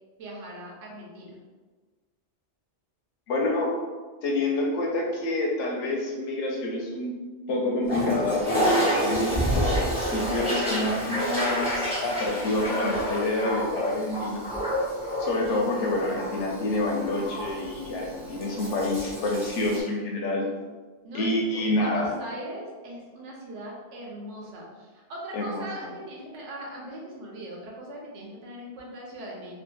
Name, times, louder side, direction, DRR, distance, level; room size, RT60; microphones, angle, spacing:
voice 1, 0.2-1.4 15.4-15.8 21.0-29.5, right 1 dB, 80° right, -3 dB, 1.0 m, -40 dB
voice 2, 3.3-3.8 4.2-7.1 7.5-14.4 15.2-20.5 21.1-22.1 25.3-25.6, left 2 dB, 85° left, 0 dB, 0.9 m, -27 dB
Toilet flush, 7.8-19.8, equal, 5° right, 0.6 m, -29 dB
2.6 x 2.5 x 2.2 m, 1.4 s
omnidirectional pair, 1.2 m